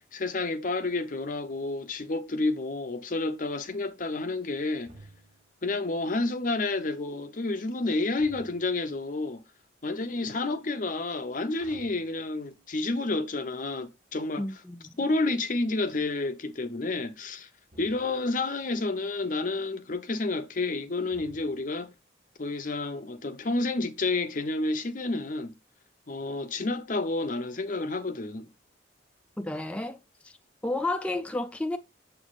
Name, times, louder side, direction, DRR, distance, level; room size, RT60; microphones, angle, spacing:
voice 1, 0.1-4.9 5.6-9.4 9.8-14.5 15.0-17.5 17.8-21.9 22.4-25.5 26.1-28.5, left 2 dB, 45° left, 0.7 m, -30 dB
sound 1, 4.9-5.6 8.2-9.0 11.6-12.8 17.7-18.4 21.1-21.9, right 1 dB, 35° right, 1.4 m, -53 dB
voice 2, 14.4-14.9 29.4-30.0 30.2-30.3 30.6-31.8, left 2 dB, 5° left, 0.4 m, -31 dB
7.2 x 6.9 x 2.4 m
head